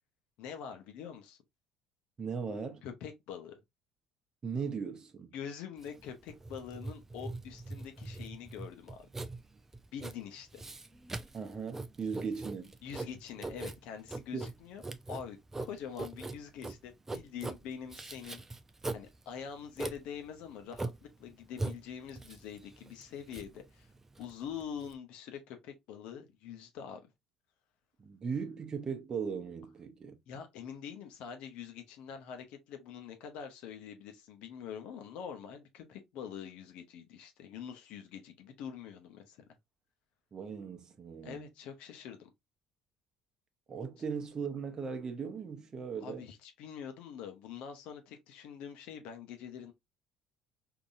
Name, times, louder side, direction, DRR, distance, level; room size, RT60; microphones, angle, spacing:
voice 1, 0.4-1.4 2.8-3.6 5.3-9.1 9.9-10.6 12.8-14.8 15.1-18.4 18.9-23.9 24.2-27.0 30.3-39.4 41.2-42.3 46.0-49.7, left 8 dB, 65° left, 0.9 m, -45 dB
voice 2, 2.2-2.8 4.4-5.3 11.3-12.7 14.3-14.4 28.0-30.2 40.3-41.5 43.7-46.2, right 6 dB, 35° right, 0.9 m, -38 dB
Writing, 5.8-24.9, right 2 dB, 20° right, 0.5 m, -42 dB
3.8 x 2.8 x 2.6 m
hypercardioid pair, 60°, 2 cm